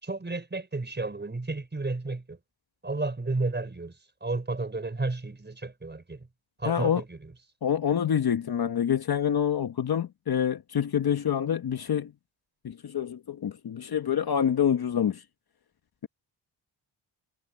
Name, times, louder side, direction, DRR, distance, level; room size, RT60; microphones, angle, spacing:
voice 1, 0.0-2.4 2.8-3.9 4.2-6.3 6.6-7.3, right 3 dB, 20° right, 4.8 m, -32 dB
voice 2, 6.6-7.0 7.6-12.1 12.6-15.2, left 8 dB, 50° left, 1.1 m, -26 dB
wide cardioid pair, 115°, 47 cm